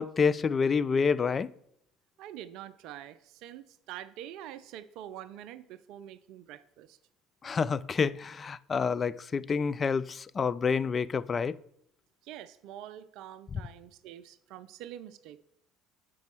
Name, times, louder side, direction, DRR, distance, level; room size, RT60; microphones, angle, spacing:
voice 1, 0.0-1.5 7.4-11.6 13.5-13.6, left 5 dB, 35° left, 0.3 m, -28 dB
voice 2, 2.2-7.0 12.2-15.4, right 11 dB, 65° right, 0.4 m, -45 dB
6.1 x 5.2 x 6.2 m
hypercardioid pair, 65°, 0 cm